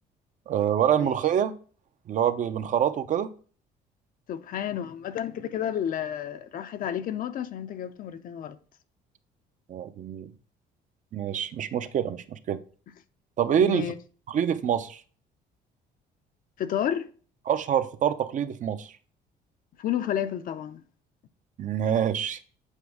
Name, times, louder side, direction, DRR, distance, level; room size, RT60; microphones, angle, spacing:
voice 1, 0.5-1.5 2.1-3.3 9.7-10.3 11.1-12.6 13.4-13.9 14.3-15.0 17.5-18.9 21.6-22.4, right 9 dB, 50° right, 0.6 m, -26 dB
voice 2, 4.3-8.6 13.6-13.9 16.6-17.1 19.8-20.8, left 10 dB, 55° left, 0.6 m, -31 dB
8.3 x 4.7 x 3.5 m
cardioid pair, 110°, 17 cm